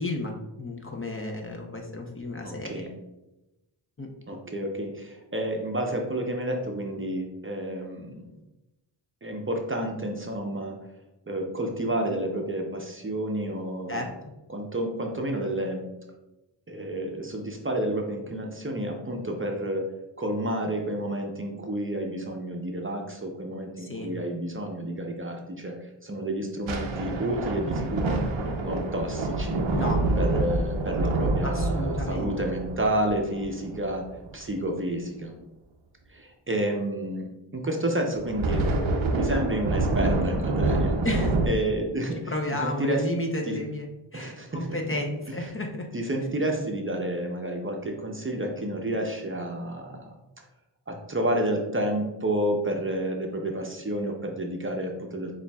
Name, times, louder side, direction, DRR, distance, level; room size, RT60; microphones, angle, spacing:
voice 1, 0.0-2.9 4.0-4.1 13.9-14.1 23.8-24.2 29.7-30.1 31.4-32.3 41.0-41.4 42.3-45.9, left 2 dB, 25° left, 2 dB, 0.6 m, -32 dB
voice 2, 2.4-2.9 4.3-8.4 9.2-10.9 11.3-14.0 14.5-15.9 16.7-28.2 28.6-29.6 30.2-34.1 34.3-35.3 36.1-38.7 39.1-40.9 41.5-42.3 42.6-43.0 43.5-43.6 44.1-44.8 45.9-50.2 50.9-55.3, right 1 dB, 25° right, 2 dB, 0.7 m, -30 dB
sound 1, 26.7-34.3 38.2-41.5, right 2 dB, 85° right, 0.7 m, -27 dB
6.9 x 2.5 x 2.3 m, 0.97 s
cardioid pair, 50°, 47 cm